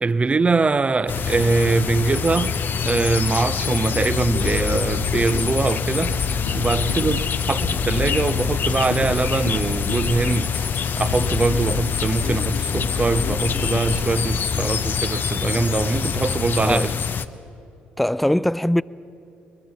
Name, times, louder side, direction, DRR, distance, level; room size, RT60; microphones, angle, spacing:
voice 1, 0.0-6.2 6.5-10.7 11.0-16.9, right 3 dB, 25° right, 0.8 m, -22 dB
sound 1, 1.1-17.3, left 6 dB, 45° left, 0.8 m, -25 dB
sound 2, 3.6-14.0, left 4 dB, 90° left, 2.6 m, -31 dB
voice 2, 18.0-18.8, left 1 dB, ahead, 0.4 m, -20 dB
21.5 x 20.5 x 7.0 m
hypercardioid pair, 50°, 5 cm